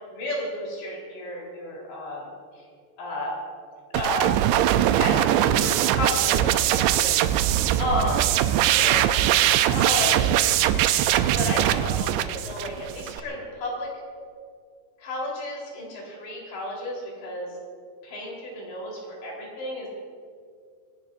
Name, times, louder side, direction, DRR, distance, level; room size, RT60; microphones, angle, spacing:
voice 1, 0.2-2.3 3.0-3.3 3.9-4.3 4.7-7.5 7.8-8.3 8.6-9.0 9.7-10.3 10.8-13.9 15.0-17.5 18.0-19.9, left 1 dB, 75° left, -3 dB, 6.3 m, -32 dB
sound 1, 3.9-13.2, right 12 dB, 85° right, 2.8 m, -21 dB
26.0 x 17.5 x 2.7 m, 2.1 s
omnidirectional pair, 5.2 m